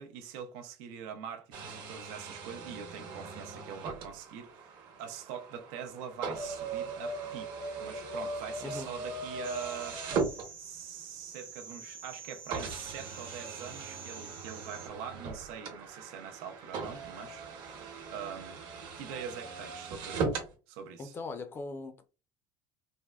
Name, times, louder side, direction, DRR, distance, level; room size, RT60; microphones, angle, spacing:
voice 1, 0.0-10.3 10.6-20.4 20.7-21.1, right 8 dB, 75° right, 0.6 m, -44 dB
sound 1, 1.5-11.0 11.7-11.8 12.5-20.5, right 4 dB, 50° right, 1.0 m, -39 dB
voice 2, 8.6-9.0 21.0-22.1, left 3 dB, 25° left, 0.5 m, -40 dB
sound 2, 9.4-14.9, right 5 dB, 20° right, 0.7 m, -47 dB
3.4 x 2.1 x 2.3 m
cardioid pair, 140°, 10 cm